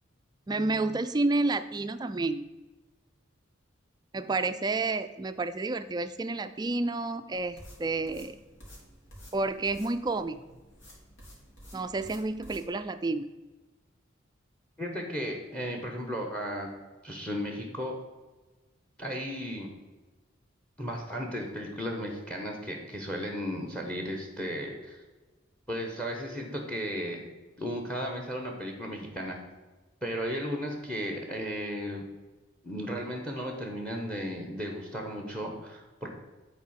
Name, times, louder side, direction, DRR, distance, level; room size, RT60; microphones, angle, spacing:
voice 1, 0.5-2.5 4.1-8.4 9.3-10.4 11.7-13.3, right 3 dB, 20° right, 11 dB, 0.3 m, -30 dB
sound 1, 7.3-12.7, equal, 65° left, 3.3 m, -51 dB
voice 2, 14.8-16.7 17.0-18.0 19.0-19.7 20.8-25.0 25.7-27.2 27.6-29.4 30.0-32.0 32.6-36.1, equal, 5° left, 3 dB, 1.1 m, -35 dB
10.5 x 4.4 x 5.6 m, 1.2 s
head